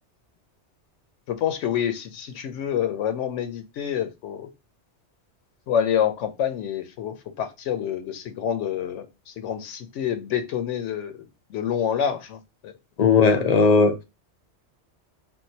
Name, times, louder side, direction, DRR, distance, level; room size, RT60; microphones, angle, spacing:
voice 1, 1.3-4.5 5.7-12.7, left 9 dB, 85° left, 0.9 m, -27 dB
voice 2, 13.0-14.0, left 4 dB, 65° left, 0.4 m, -17 dB
3.7 x 2.4 x 2.7 m
omnidirectional pair, 1.2 m